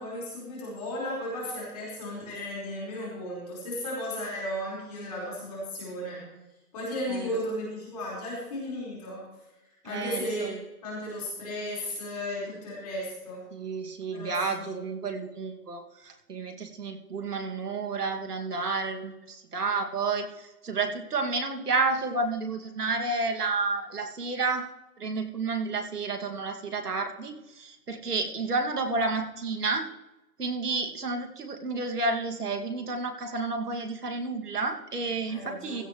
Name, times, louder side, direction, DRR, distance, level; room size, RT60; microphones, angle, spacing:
voice 1, 0.0-6.2 6.7-9.2 9.8-10.6 10.8-13.4 14.1-14.8 35.2-35.8, left 1 dB, 25° left, -6 dB, 4.6 m, -35 dB
voice 2, 9.8-10.6 13.5-24.7 25.0-29.9 30.4-35.8, right 3 dB, 80° right, 3 dB, 2.3 m, -31 dB
16.5 x 14.0 x 3.1 m, 1.0 s
hypercardioid pair, 175°, 46 cm